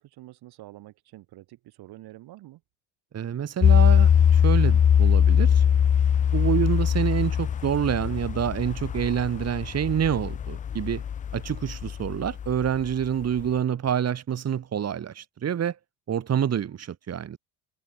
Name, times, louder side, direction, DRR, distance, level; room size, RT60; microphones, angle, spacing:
voice 1, 0.0-2.6, right 16 dB, 60° right, 6.4 m, -47 dB
voice 2, 3.1-5.7 6.3-11.0 11.3-15.8 16.1-17.4, right 9 dB, 35° right, 2.7 m, -27 dB
sound 1, 3.6-12.9 13.4-13.5, left 8 dB, 20° left, 0.4 m, -22 dB
supercardioid pair, 110°, 44 cm